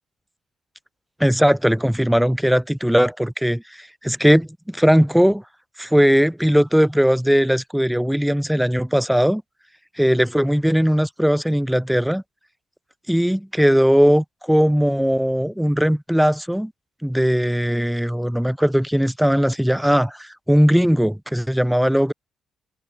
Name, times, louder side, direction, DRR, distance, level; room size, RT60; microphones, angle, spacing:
voice 1, 1.2-5.4 5.8-9.4 10.0-12.2 13.1-16.7 17.0-22.1, equal, ahead, 5.8 m, -19 dB
open air
cardioid pair, 90°, 0 cm